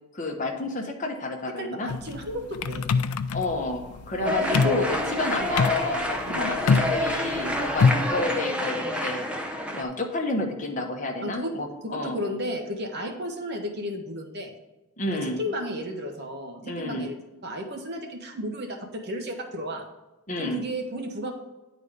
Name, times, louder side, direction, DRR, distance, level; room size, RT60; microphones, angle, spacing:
voice 1, 0.1-1.9 3.3-9.3 9.7-12.2 15.0-15.4 16.6-17.1 20.3-20.6, left 2 dB, 35° left, 2 dB, 1.0 m, -30 dB
voice 2, 1.6-2.8 4.2-5.1 6.3-6.6 7.9-8.1 11.2-11.5 11.8-14.5 15.2-17.1 17.4-19.8 20.4-21.3, equal, 50° right, 3 dB, 1.2 m, -33 dB
sound 1, 1.9-8.2, left 5 dB, 90° left, 0.4 m, -25 dB
sound 2, 4.2-9.8, left 1 dB, 5° right, 0.6 m, -28 dB
9.9 x 4.1 x 5.1 m, 1.1 s
head